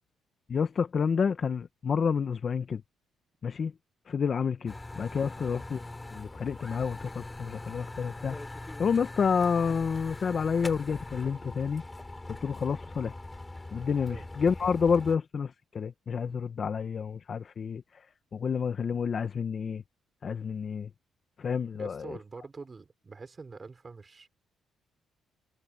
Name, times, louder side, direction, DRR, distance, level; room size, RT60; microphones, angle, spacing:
voice 1, 0.5-2.8 3.4-3.7 4.1-5.8 6.1-8.4 8.8-11.8 12.4-13.1 13.7-17.8 18.3-19.8 20.2-20.9 21.4-22.2, left 6 dB, 45° left, 1.2 m, -29 dB
sound 1, 4.7-15.2, left 2 dB, 15° left, 6.8 m, -42 dB
voice 2, 21.7-24.3, right 4 dB, 30° right, 4.6 m, -45 dB
cardioid pair, 90°, 0 cm